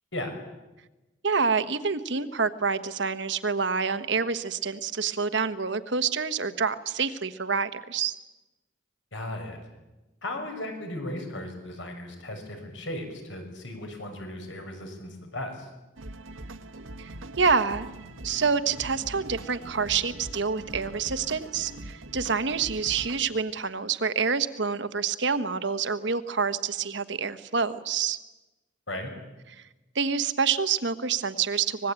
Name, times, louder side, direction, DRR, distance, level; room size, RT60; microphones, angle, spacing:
voice 1, 1.2-8.1 17.0-17.1 17.4-17.9 18.2-28.2 29.9-31.9, right 5 dB, 60° right, 11 dB, 1.2 m, -27 dB
voice 2, 9.1-9.6 10.2-15.7 28.9-29.1, left 1 dB, 70° left, 5 dB, 6.4 m, -36 dB
sound 1, 16.0-23.2, right 1 dB, 85° right, 1.4 m, -42 dB
24.5 x 20.5 x 8.9 m, 1.1 s
head